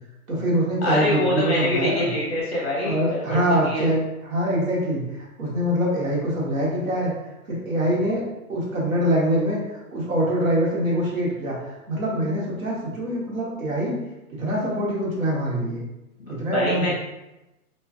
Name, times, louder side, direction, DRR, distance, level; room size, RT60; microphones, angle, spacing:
voice 1, 0.3-2.1 2.8-7.1 7.5-8.2 8.5-14.0 14.3-15.8 16.3-16.9, equal, 60° right, -4 dB, 1.0 m, -24 dB
voice 2, 0.8-3.9 16.2-16.9, left 1 dB, 45° left, -5 dB, 0.9 m, -25 dB
2.3 x 2.3 x 2.4 m, 0.97 s
hypercardioid pair, 180°, 46 cm